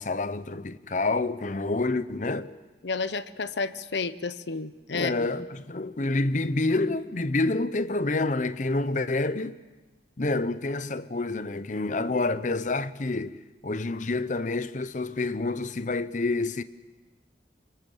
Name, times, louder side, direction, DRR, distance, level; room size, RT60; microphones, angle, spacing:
voice 1, 0.0-2.5 4.9-9.5 10.2-16.6, left 2 dB, 45° left, 0.8 m, -28 dB
voice 2, 2.8-5.3, left 4 dB, 80° left, 0.9 m, -31 dB
25.0 x 23.5 x 7.3 m
head